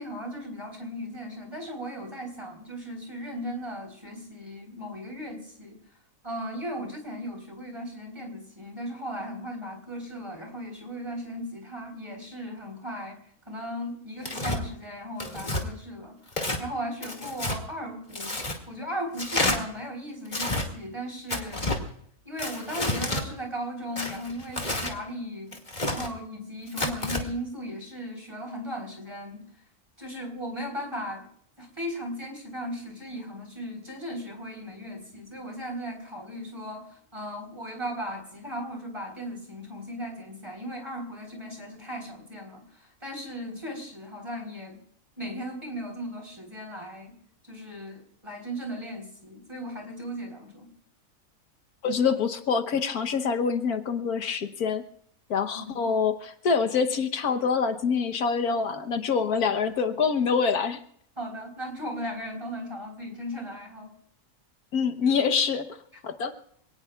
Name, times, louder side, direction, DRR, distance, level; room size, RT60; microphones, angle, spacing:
voice 1, 0.0-5.8 6.2-16.2 16.6-21.7 22.2-25.6 25.9-29.4 30.0-31.3 31.6-44.8 45.2-47.2 47.4-50.7 55.5-55.9 61.2-63.9, equal, 20° right, 3 dB, 4.0 m, -37 dB
Tearing, 14.2-14.6 15.2-15.6 16.3-16.6 17.0-17.6 18.1-18.6 19.2-19.6 20.3-20.7 21.3-21.8 22.4-23.2 24.0-24.9 25.5-26.1 26.7-27.2, left 2 dB, 30° left, 2.3 m, -29 dB
voice 2, 51.8-54.8 55.3-60.8 64.7-65.7 66.0-66.3, left 5 dB, 80° left, 8 dB, 1.6 m, -25 dB
26.5 x 18.5 x 2.4 m, 0.66 s
omnidirectional pair, 1.6 m